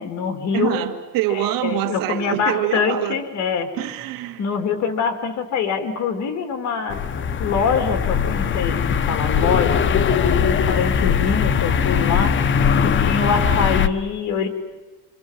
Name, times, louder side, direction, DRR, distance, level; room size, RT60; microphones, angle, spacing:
voice 1, 0.0-0.8 1.3-3.7 4.4-7.0 7.4-8.8 9.1-12.4 12.8-14.5, left 6 dB, 50° left, 7 dB, 3.4 m, -24 dB
voice 2, 0.5-3.2 3.8-4.4, right 13 dB, 65° right, 7 dB, 2.2 m, -25 dB
sound 1, 6.9-13.9, left 7 dB, 30° left, 1.0 m, -20 dB
28.5 x 26.5 x 7.6 m, 1.3 s
cardioid pair, 140°, 37 cm